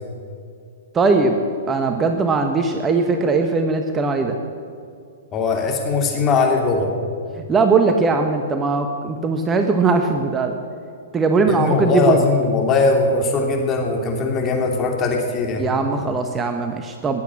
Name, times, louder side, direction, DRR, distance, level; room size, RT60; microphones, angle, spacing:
voice 1, 0.9-1.4 1.7-4.4 7.5-10.6 11.1-12.2 15.6-17.2, right 4 dB, 20° right, 5 dB, 1.1 m, -19 dB
voice 2, 5.3-6.9 11.5-15.7, left 3 dB, 25° left, 2 dB, 3.0 m, -20 dB
19.5 x 8.5 x 7.3 m, 2.4 s
hypercardioid pair, 125°, 0 cm